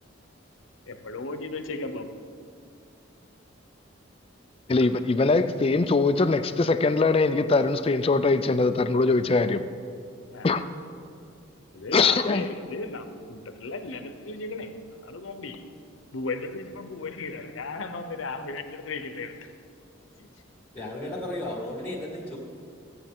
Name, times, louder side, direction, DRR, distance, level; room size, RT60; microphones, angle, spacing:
voice 1, 0.9-2.2 4.8-4.9 10.3-10.5 11.7-15.6 16.1-19.5 20.2-20.3, left 3 dB, 85° left, 9 dB, 0.8 m, -36 dB
voice 2, 4.7-9.6 10.4-10.6 11.9-12.5, left 3 dB, 30° left, 10 dB, 0.4 m, -22 dB
voice 3, 20.7-22.4, left 1 dB, 10° left, -7 dB, 2.1 m, -34 dB
16.0 x 8.6 x 3.7 m, 2.4 s
head